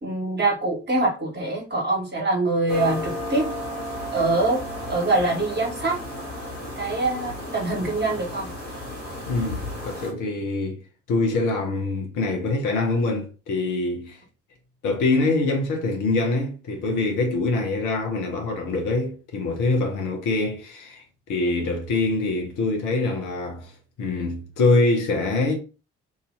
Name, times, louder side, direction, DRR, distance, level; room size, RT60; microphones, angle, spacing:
voice 1, 0.0-3.5 4.1-4.6 4.9-6.0 6.8-8.5, right 2 dB, 30° right, 1.7 m, -24 dB
sound 1, 2.7-10.1, left 1 dB, 90° right, 1.1 m, -33 dB
voice 2, 9.3-10.8 11.1-14.2 14.8-23.7 24.0-25.6, left 3 dB, 60° left, 1.0 m, -24 dB
3.0 x 2.7 x 4.0 m
figure-of-eight pair, 40°, 35 cm